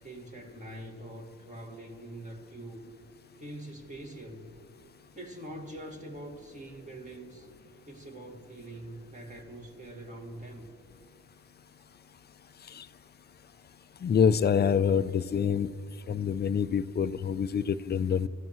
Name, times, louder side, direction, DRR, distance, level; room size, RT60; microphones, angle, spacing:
voice 1, 0.0-2.8 3.4-4.5 5.2-7.5 7.9-10.7, right 1 dB, 25° right, 1 dB, 2.0 m, -44 dB
voice 2, 14.0-15.7 16.1-18.3, left 7 dB, 35° left, 14 dB, 0.5 m, -26 dB
29.5 x 15.0 x 3.1 m, 2.3 s
cardioid pair, 90°, 30 cm